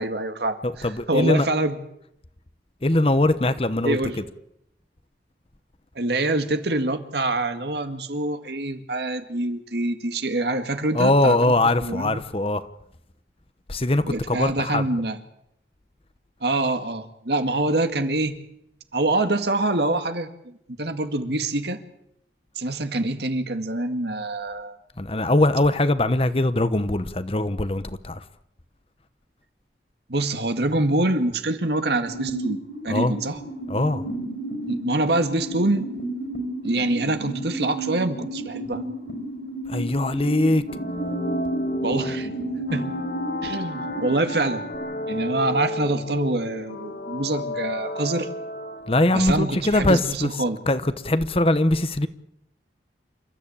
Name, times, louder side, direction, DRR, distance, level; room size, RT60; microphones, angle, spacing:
voice 1, 0.0-1.8 3.8-4.2 6.0-11.5 11.8-12.2 14.1-15.2 16.4-18.4 18.9-20.3 20.8-21.8 22.6-24.8 30.1-33.4 34.7-35.9 36.6-38.8 41.8-42.3 42.6-42.9 43.4-44.6 45.1-48.3 49.1-50.6, right 2 dB, 70° right, 2.0 m, -25 dB
voice 2, 0.6-1.5 2.8-4.0 10.9-12.7 13.7-14.8 25.0-28.2 32.9-33.2 33.7-34.0 39.7-40.6 48.9-50.3 50.7-52.1, left 1 dB, 30° left, 1.0 m, -21 dB
sound 1, 32.0-44.8, right 2 dB, 70° left, 5.7 m, -33 dB
sound 2, 40.7-49.3, left 1 dB, 55° left, 1.5 m, -31 dB
28.5 x 14.0 x 8.7 m
head